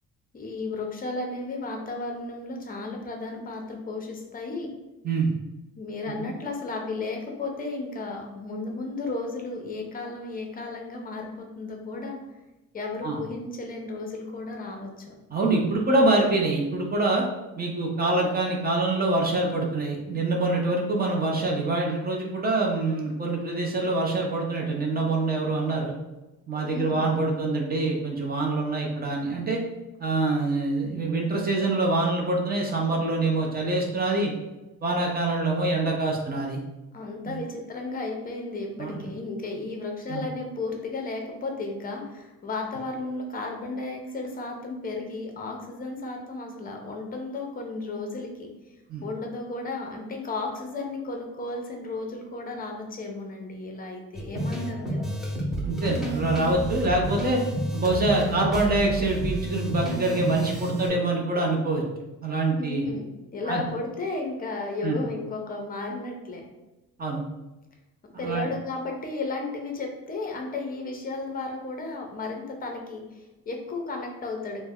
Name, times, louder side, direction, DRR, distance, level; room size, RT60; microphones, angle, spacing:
voice 1, 0.3-4.7 5.7-12.2 12.7-15.1 26.6-27.1 36.9-48.5 49.0-55.1 62.6-66.4 68.2-74.7, left 3 dB, 25° left, 2 dB, 0.6 m, -34 dB
voice 2, 15.3-17.3 17.6-25.9 26.5-29.6 30.0-34.3 34.8-36.6 37.3-37.4 38.8-39.0 40.1-40.3 48.9-49.0 55.6-57.4 57.7-61.8 62.2-62.9 63.4-63.6 64.8-65.0 67.0-67.2 68.2-68.5, right 2 dB, 25° right, -1 dB, 0.6 m, -25 dB
sound 1, 54.1-60.9, right 1 dB, ahead, 0.8 m, -30 dB
3.2 x 2.1 x 3.5 m, 1.0 s
cardioid pair, 135°, 35 cm